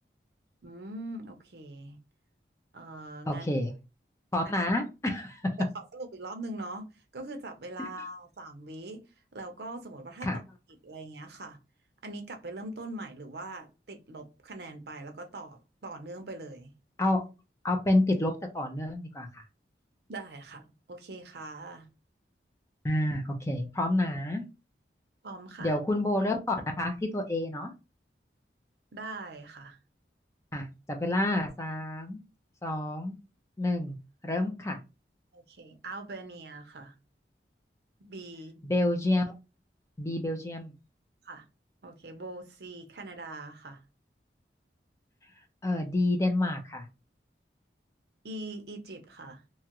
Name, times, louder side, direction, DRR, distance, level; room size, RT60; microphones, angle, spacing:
voice 1, 0.6-2.0 2.7-3.5 5.7-6.8 7.1-9.0 9.3-10.4 10.8-11.6 12.0-16.7 20.1-21.9 25.2-25.8 28.9-29.8 35.3-36.9 38.0-38.7 41.2-41.5 41.8-43.8 48.2-49.4, right 2 dB, 65° right, 0.6 m, -42 dB
voice 2, 3.3-3.7 4.3-5.5 7.8-7.9 10.2-10.4 17.0-17.2 17.6-19.4 22.8-24.4 25.6-27.7 30.5-32.2 32.6-33.2 33.6-34.0 34.2-34.8 38.6-39.2 40.0-40.7 45.6-46.9, left 1 dB, 15° left, 0.5 m, -29 dB
2.9 x 2.3 x 2.9 m
head